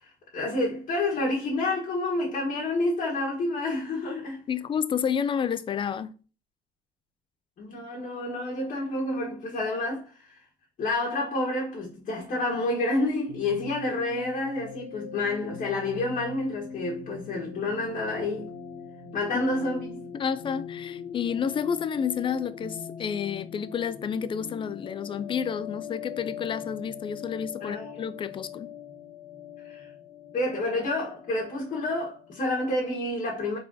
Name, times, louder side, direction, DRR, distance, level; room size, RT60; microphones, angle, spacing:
voice 1, 0.0-4.5 7.6-10.4 10.8-18.5 19.1-20.0 27.6-28.0 29.6-29.9 30.3-33.6, left 2 dB, 50° left, 1.6 m, -29 dB
voice 2, 4.5-6.1 19.3-19.5 20.1-28.7, left 7 dB, 30° left, 0.4 m, -30 dB
sound 1, 13.3-32.8, left 8 dB, 85° left, 0.9 m, -42 dB
4.1 x 3.8 x 2.7 m
cardioid pair, 110°, 17 cm